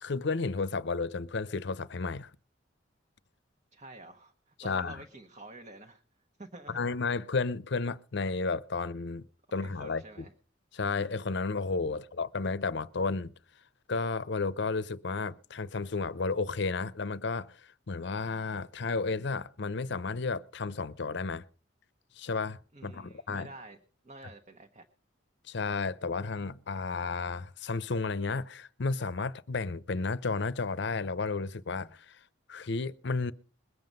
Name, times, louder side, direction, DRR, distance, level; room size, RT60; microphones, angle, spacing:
voice 1, 0.0-2.3 4.6-5.0 6.7-9.3 9.5-10.0 10.7-13.3 13.9-17.6 17.9-21.4 22.2-23.5 25.5-32.2 32.5-33.3, left 4 dB, 60° left, 0.7 m, -32 dB
voice 2, 3.7-6.0 6.4-6.8 9.5-10.3 22.7-23.8 24.0-24.8, right 2 dB, 40° right, 1.2 m, -49 dB
21.5 x 7.7 x 5.3 m
head